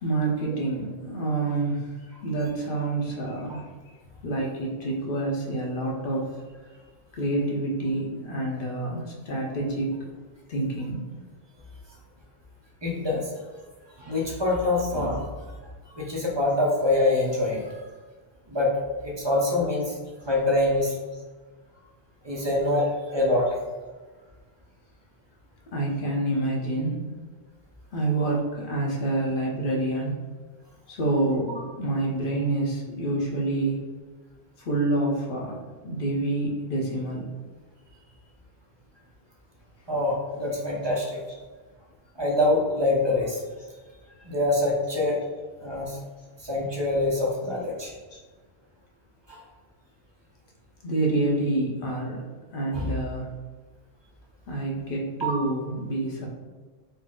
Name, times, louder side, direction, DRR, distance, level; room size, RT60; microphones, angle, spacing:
voice 1, 0.0-1.9 2.2-3.7 4.2-6.3 7.2-10.0 10.5-11.0 21.1-21.2 25.7-27.1 27.9-30.1 30.9-33.8 34.6-37.3 48.1-48.2 50.8-52.2 52.5-53.3 54.5-56.3, right 2 dB, 60° left, -2 dB, 0.9 m, -27 dB
voice 2, 12.8-13.3 14.0-15.5 15.9-17.8 18.5-20.0 20.2-20.9 22.2-23.5 39.9-41.2 42.2-43.4 44.2-45.2 45.6-46.0 46.4-47.9 49.3-49.4 52.7-53.0 55.2-55.4, left 2 dB, 30° right, -3 dB, 0.6 m, -25 dB
4.2 x 2.0 x 3.7 m, 1.4 s
omnidirectional pair, 1.1 m